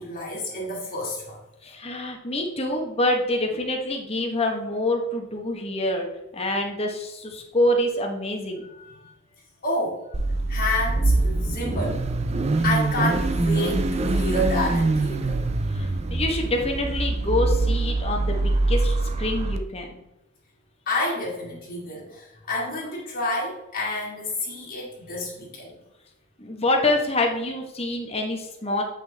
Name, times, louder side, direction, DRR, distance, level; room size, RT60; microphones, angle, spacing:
voice 1, 0.0-1.4 8.9-9.0 9.6-10.0 10.5-12.3 12.6-15.4 20.9-25.8, left 1 dB, 45° left, -5 dB, 2.0 m, -29 dB
voice 2, 1.6-6.1 6.3-8.7 15.7-20.0 26.4-28.8, left 1 dB, 30° left, 2 dB, 1.2 m, -26 dB
Car / Idling / Accelerating revving vroom, 10.1-19.6, right 2 dB, 30° right, 0.5 m, -24 dB
8.1 x 5.6 x 3.5 m, 0.90 s
head